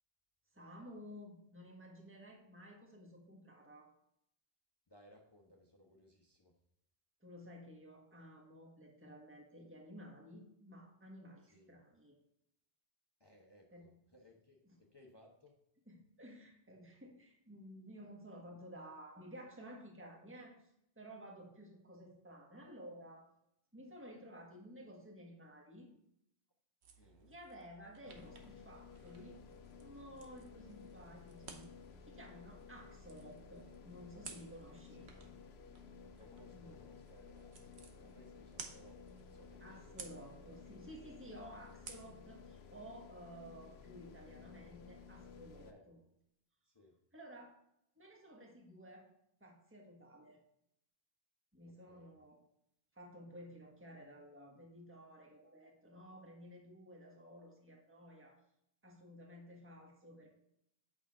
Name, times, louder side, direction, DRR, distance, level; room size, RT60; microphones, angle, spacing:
voice 1, 0.5-3.9 7.2-12.1 13.7-14.0 14.6-14.8 15.9-23.3 23.7-25.9 27.0-29.4 29.8-31.7 32.1-35.1 36.5-36.9 39.6-46.0 47.1-47.5 47.9-49.1 49.4-50.4 51.5-52.4 52.9-58.4 58.8-60.3, equal, 10° right, 0 dB, 1.4 m, -54 dB
voice 2, 4.9-6.6 11.4-11.8 13.2-15.5 27.0-27.3 34.9-35.1 36.2-39.9 45.6-45.9 46.6-47.0 51.6-52.1, left 1 dB, 25° left, -1 dB, 1.0 m, -63 dB
sound 1, 26.8-42.2, right 5 dB, 80° right, 1.2 m, -57 dB
sound 2, 28.1-45.7, left 6 dB, 75° left, 0.9 m, -56 dB
8.2 x 5.9 x 3.6 m, 0.78 s
omnidirectional pair, 1.1 m